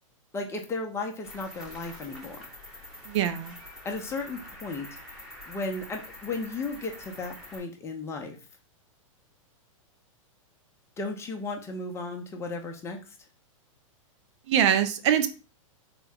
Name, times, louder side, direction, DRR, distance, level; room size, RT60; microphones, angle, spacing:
voice 1, 0.3-2.5 3.8-4.9 5.5-8.4 11.0-13.0, left 3 dB, 15° left, 3 dB, 0.6 m, -35 dB
Cricket, 1.2-7.6, left 1 dB, 5° right, 1.0 m, -46 dB
voice 2, 3.1-3.5 14.5-15.3, right 9 dB, 55° right, 9 dB, 0.5 m, -23 dB
3.7 x 2.1 x 3.4 m, 0.34 s
hypercardioid pair, 130°, 17 cm